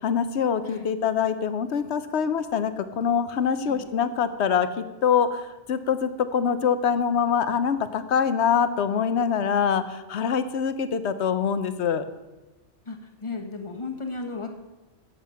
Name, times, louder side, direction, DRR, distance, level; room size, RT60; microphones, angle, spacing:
voice 1, 0.0-12.1, left 7 dB, 70° left, 12 dB, 1.0 m, -24 dB
voice 2, 3.6-3.9 12.8-14.5, left 3 dB, 25° left, 4 dB, 1.2 m, -35 dB
12.0 x 8.0 x 5.6 m, 1.1 s
omnidirectional pair, 1.2 m